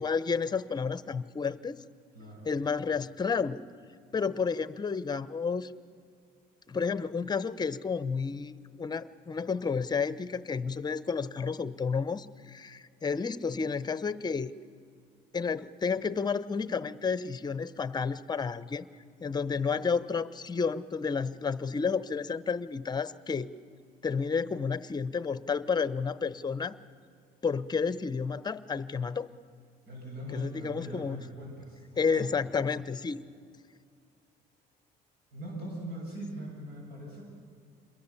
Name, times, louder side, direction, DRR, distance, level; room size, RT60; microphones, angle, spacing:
voice 1, 0.0-1.8 2.4-3.7 4.1-5.7 6.7-8.5 8.8-14.5 15.3-18.9 19.2-23.5 24.0-26.8 27.4-29.3 30.3-31.2 32.0-33.3, left 5 dB, 25° left, 15 dB, 0.8 m, -31 dB
voice 2, 2.1-2.5 29.9-32.2 35.3-37.2, right 1 dB, 70° right, -2 dB, 7.6 m, -41 dB
27.5 x 21.5 x 7.1 m, 2.3 s
cardioid pair, 110°, 17 cm